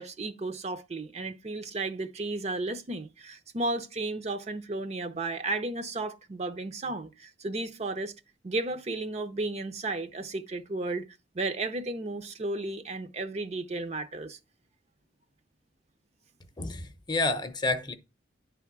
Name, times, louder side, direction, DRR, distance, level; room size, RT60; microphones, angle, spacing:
voice 1, 0.0-8.1 8.4-11.0 11.3-14.4, right 2 dB, 40° right, 0.7 m, -33 dB
voice 2, 16.6-17.9, left 2 dB, 25° left, 0.8 m, -29 dB
10.0 x 3.5 x 5.9 m
head